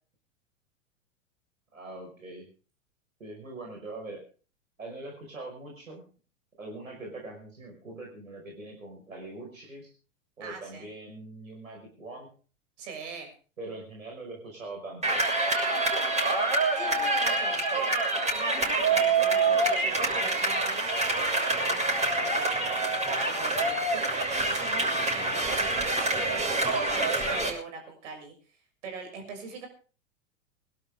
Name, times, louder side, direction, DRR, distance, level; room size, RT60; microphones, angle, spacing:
voice 1, 1.7-2.5 3.2-4.2 4.8-6.0 6.6-9.9 10.4-12.3 13.6-15.2, right 2 dB, 85° right, 0 dB, 5.3 m, -42 dB
voice 2, 10.4-10.9 12.8-13.3 16.8-28.3 28.8-29.7, right 4 dB, 65° right, 4 dB, 7.0 m, -41 dB
sound 1, 15.0-27.5, right 2 dB, 15° right, 6.9 m, -26 dB
24.0 x 12.0 x 3.7 m, 0.39 s
hypercardioid pair, 95°, 39 cm